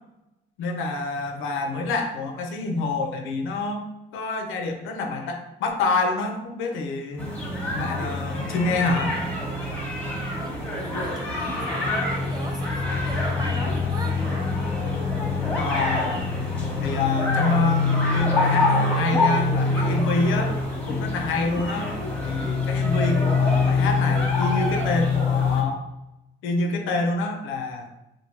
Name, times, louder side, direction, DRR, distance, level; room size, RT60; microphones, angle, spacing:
voice 1, 0.6-3.8 4.1-7.3 7.7-9.2 15.6-16.3 16.8-17.9 18.1-20.6 20.9-21.9 22.2-25.8 26.4-27.9, left 3 dB, 90° left, 4 dB, 0.5 m, -27 dB
sound 1, 7.2-25.6, left 3 dB, 5° left, 0.9 m, -25 dB
voice 2, 10.4-14.2, right 2 dB, 20° right, 2 dB, 0.5 m, -38 dB
2.6 x 2.1 x 3.1 m, 0.91 s
cardioid pair, 90°, 20 cm